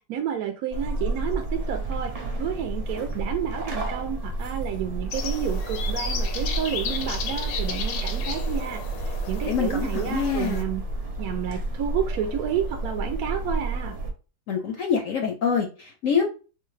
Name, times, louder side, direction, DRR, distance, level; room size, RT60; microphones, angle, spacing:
voice 1, 0.0-2.1 2.4-10.8 11.2-14.0, right 9 dB, 70° right, 4 dB, 0.9 m, -30 dB
sound 1, 0.7-14.1, right 2 dB, 50° right, 0.4 m, -30 dB
sound 2, 5.1-10.6, left 6 dB, 90° left, 1.3 m, -34 dB
voice 2, 9.4-10.7 14.5-16.3, left 6 dB, 65° left, 3 dB, 0.8 m, -26 dB
4.7 x 2.1 x 3.2 m, 0.33 s
omnidirectional pair, 1.9 m